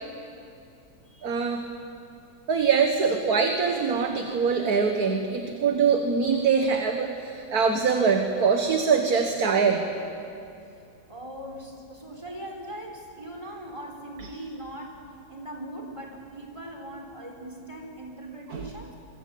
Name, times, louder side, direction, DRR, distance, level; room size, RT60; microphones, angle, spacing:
voice 1, 1.2-1.7 2.5-9.8 18.5-18.7, right 5 dB, 55° right, 5 dB, 1.9 m, -23 dB
voice 2, 11.1-15.0 15.3-18.9, right 1 dB, 15° right, 1 dB, 4.6 m, -40 dB
26.5 x 24.5 x 8.6 m, 2.6 s
omnidirectional pair, 2.0 m